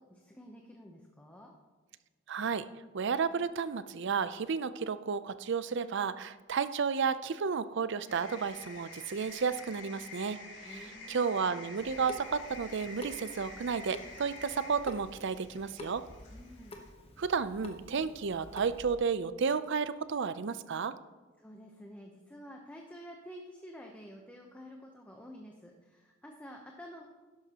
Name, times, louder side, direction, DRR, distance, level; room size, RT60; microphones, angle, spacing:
voice 1, 0.0-1.5 10.6-11.2 16.3-16.8 21.4-27.1, equal, 5° left, 1 dB, 0.8 m, -50 dB
voice 2, 2.3-2.7 2.9-10.8 11.1-16.0 17.2-20.9, right 5 dB, 60° right, 14 dB, 0.5 m, -32 dB
sound 1, 8.1-16.9, left 3 dB, 60° left, 2.4 m, -49 dB
Water tap faucet / Sink (filling or washing) / Drip, 11.8-19.0, left 1 dB, 30° left, 1.1 m, -50 dB
12.0 x 11.0 x 2.9 m, 1.3 s
head